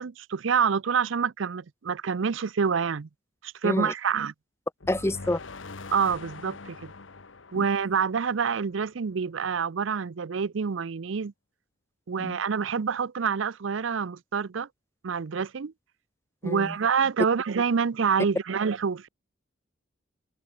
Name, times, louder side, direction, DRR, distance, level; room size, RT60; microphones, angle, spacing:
voice 1, 0.0-3.1 3.4-4.3 5.9-6.9 7.5-11.3 12.1-14.7 15.0-15.7 16.4-19.1, right 6 dB, 80° right, 0.5 m, -27 dB
sound 1, 4.8-8.9, left 3 dB, 80° left, 1.3 m, -43 dB
voice 2, 4.9-5.4 7.6-7.7 12.2-12.3 16.4-16.7, left 1 dB, 15° left, 0.5 m, -28 dB
open air
head